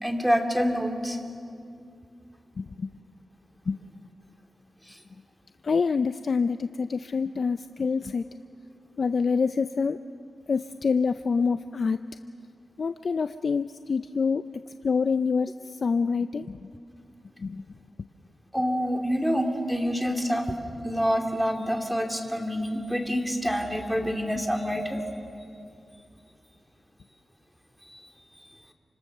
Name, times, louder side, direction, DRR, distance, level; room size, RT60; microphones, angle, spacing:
voice 1, 0.0-1.2 4.9-5.0 18.5-20.5 20.8-25.0, equal, 5° right, 3 dB, 2.9 m, -27 dB
voice 2, 2.6-2.9 3.7-3.8 5.6-8.3 9.0-10.0 10.5-12.0 12.8-16.7 17.4-17.6, left 5 dB, 60° left, 11 dB, 0.5 m, -26 dB
28.5 x 25.5 x 6.7 m, 2.4 s
cardioid pair, 80°, 0 cm